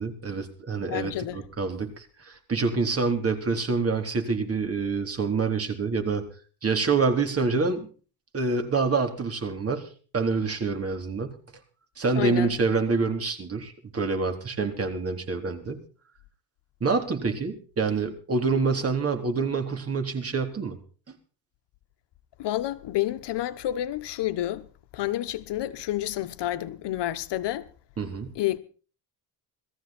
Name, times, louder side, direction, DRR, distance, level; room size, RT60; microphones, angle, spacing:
voice 1, 0.0-6.2 6.6-7.9 8.3-11.4 12.0-15.8 16.8-20.8 21.1-21.2 28.0-28.3, right 4 dB, 30° right, 3.8 m, -27 dB
voice 2, 0.9-1.5 12.2-12.5 22.4-24.7 24.9-27.7 28.3-28.6, left 14 dB, 70° left, 1.2 m, -29 dB
19.5 x 14.5 x 4.4 m
cardioid pair, 125°, 43 cm